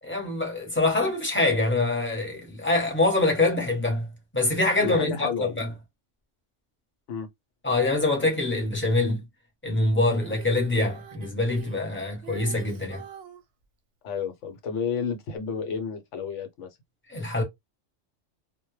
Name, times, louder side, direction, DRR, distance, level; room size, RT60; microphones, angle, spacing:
voice 1, 0.0-4.1 4.3-5.7 7.6-9.2 9.6-13.0 17.1-17.4, left 2 dB, 10° left, 0.8 m, -24 dB
voice 2, 4.8-5.6 7.1-7.3 14.0-16.7, left 6 dB, 75° left, 1.0 m, -31 dB
Female singing, 10.1-13.4 15.4-15.5, right 6 dB, 65° right, 0.7 m, -45 dB
2.2 x 2.1 x 3.0 m
omnidirectional pair, 1.3 m